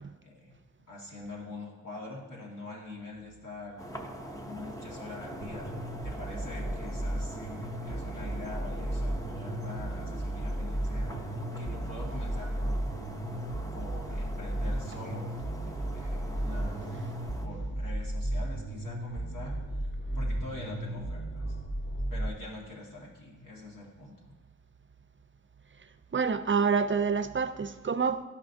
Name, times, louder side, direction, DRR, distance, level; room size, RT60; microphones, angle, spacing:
voice 1, 0.2-0.5 0.9-3.8 4.4-5.7 6.0-11.2 11.6-12.8 13.7-16.9 17.2-21.6 22.1-24.3, left 2 dB, 90° left, 1.8 m, -44 dB
sound 1, 3.8-17.5, equal, 10° left, 0.7 m, -43 dB
sound 2, 5.4-22.3, right 1 dB, 45° left, 1.1 m, -34 dB
voice 2, 26.1-28.2, right 5 dB, 40° right, 0.4 m, -27 dB
12.0 x 5.6 x 2.6 m
wide cardioid pair, 65°, 31 cm